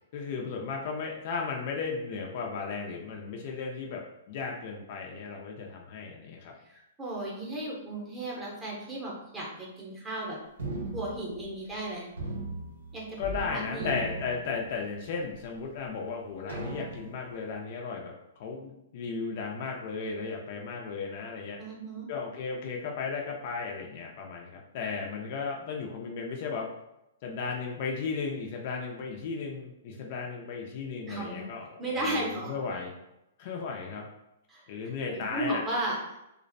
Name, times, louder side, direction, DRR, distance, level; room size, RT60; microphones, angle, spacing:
voice 1, 0.1-4.0 4.3-6.5 13.2-18.1 18.4-21.6 22.1-26.7 27.2-32.9 33.4-34.1 34.7-35.6, left 5 dB, 45° left, 0 dB, 0.4 m, -35 dB
voice 2, 6.6-10.4 10.9-12.1 12.9-13.9 21.6-22.1 31.1-31.5 31.8-32.5 34.5-34.7 35.1-36.0, right 1 dB, 10° right, -5 dB, 0.7 m, -35 dB
sound 1, 10.6-11.8 12.2-13.5 13.7-15.0 15.6-15.7 16.5-17.3, right 2 dB, 90° right, 0.6 m, -38 dB
2.4 x 2.0 x 2.5 m, 0.88 s
hypercardioid pair, 155°, 0 cm